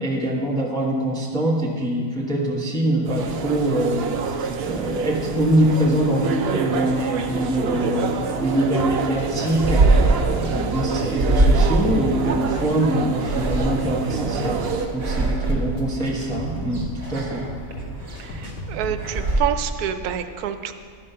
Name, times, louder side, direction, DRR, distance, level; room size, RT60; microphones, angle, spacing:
voice 1, 0.0-17.5, right 1 dB, 5° left, -2 dB, 0.9 m, -24 dB
sound 1, 3.0-14.9, right 5 dB, 65° right, 0.6 m, -27 dB
sound 2, 8.8-19.4, equal, 90° left, 1.6 m, -36 dB
sound 3, 9.6-19.4, right 2 dB, 45° right, 1.4 m, -23 dB
voice 2, 18.2-20.7, right 10 dB, 90° right, 9 dB, 1.1 m, -27 dB
11.5 x 5.4 x 5.5 m, 2.1 s
omnidirectional pair, 1.6 m